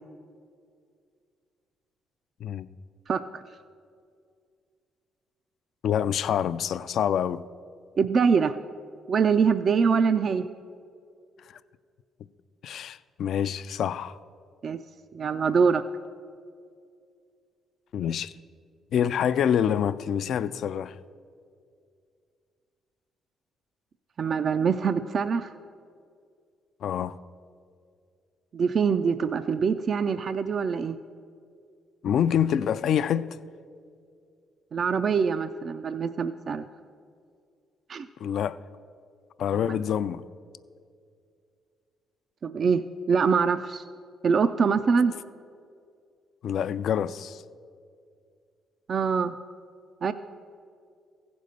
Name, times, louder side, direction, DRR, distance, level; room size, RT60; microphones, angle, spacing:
voice 1, 3.1-3.4 8.0-8.6 9.1-10.4 14.6-14.8 15.1-15.8 24.2-25.5 28.5-31.0 34.7-36.7 37.9-38.1 39.5-39.8 42.4-43.8 44.2-45.1 48.9-49.4 50.0-50.1, right 5 dB, 55° right, 0.3 m, -24 dB
voice 2, 5.8-7.4 12.6-14.2 17.9-18.3 18.9-21.0 26.8-27.1 32.0-33.3 38.2-38.6 39.4-40.2 46.4-47.4, left 9 dB, 70° left, 0.3 m, -26 dB
15.0 x 5.2 x 6.6 m
supercardioid pair, 65°, 0 cm